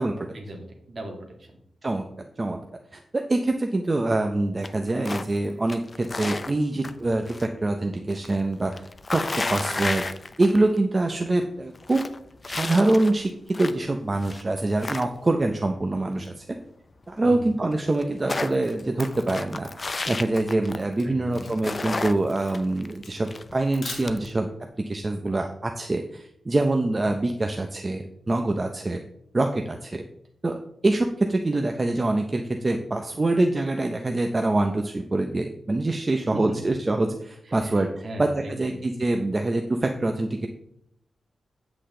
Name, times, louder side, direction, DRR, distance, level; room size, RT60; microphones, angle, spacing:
voice 1, 0.3-1.6 17.2-17.5 21.1-21.6 36.3-36.6 37.4-38.7, right 1 dB, 45° right, 2 dB, 1.9 m, -38 dB
voice 2, 2.9-8.8 9.1-9.2 9.5-12.0 12.4-16.4 17.1-24.5 24.9-29.0 29.3-30.0 30.4-30.6 30.8-40.5, right 2 dB, 25° right, 4 dB, 0.6 m, -25 dB
sound 1, 4.6-5.4 5.7-7.5 7.8-10.8 11.1-11.2 11.6-13.9 14.2-15.5 17.0-17.1 17.3-17.4 17.7-21.0 21.3-24.3, left 3 dB, 30° left, 0.5 m, -33 dB
Camera, 18.8-24.6, left 4 dB, 75° left, 2.4 m, -44 dB
8.3 x 7.9 x 3.7 m, 0.73 s
wide cardioid pair, 155°, 0 cm